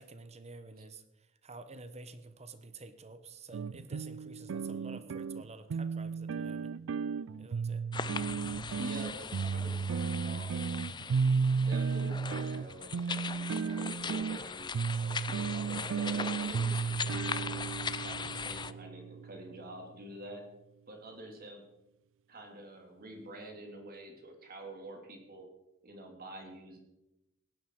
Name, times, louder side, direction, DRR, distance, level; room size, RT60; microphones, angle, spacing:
voice 1, 0.0-6.7 7.4-7.8, right 3 dB, 30° right, 10 dB, 1.1 m, -50 dB
sound 1, 3.5-19.8, right 5 dB, 65° right, 0.4 m, -34 dB
sound 2, 7.9-18.7, left 6 dB, 20° left, 0.5 m, -40 dB
voice 2, 8.8-10.7 11.5-17.5 18.0-20.4 20.9-21.6 22.3-25.5 25.8-26.8, right 1 dB, 50° right, 3 dB, 3.2 m, -47 dB
17.5 x 11.0 x 4.8 m, 0.90 s
head